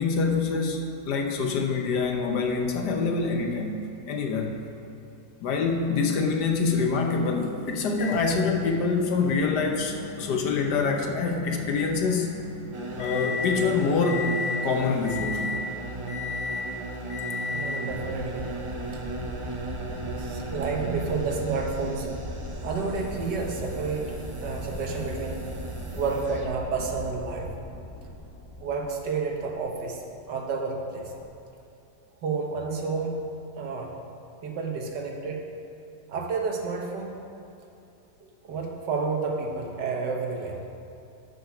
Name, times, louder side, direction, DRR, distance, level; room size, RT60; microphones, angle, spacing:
voice 1, 0.0-4.6 5.4-12.3 13.0-14.3 14.6-15.5, left 4 dB, 70° left, 3 dB, 1.4 m, -25 dB
Microwave oven, 8.0-13.6 14.0-14.6 15.0-15.7 16.1-16.7 17.1-17.9 18.9-19.0 21.0-21.1, left 4 dB, 85° left, 2.2 m, -35 dB
sound 1, 12.7-26.5, right 3 dB, 50° right, 0.3 m, -37 dB
voice 2, 17.5-18.5 20.2-22.1 22.6-25.4 25.9-27.5 28.6-31.2 32.2-33.2 33.5-34.0 34.4-35.4 36.1-37.1 38.2-40.6, right 4 dB, 70° right, 1 dB, 1.7 m, -30 dB
sound 2, 17.9-29.9 31.1-31.3, equal, 15° left, 0.6 m, -39 dB
8.3 x 7.8 x 5.9 m, 2.8 s
omnidirectional pair, 1.9 m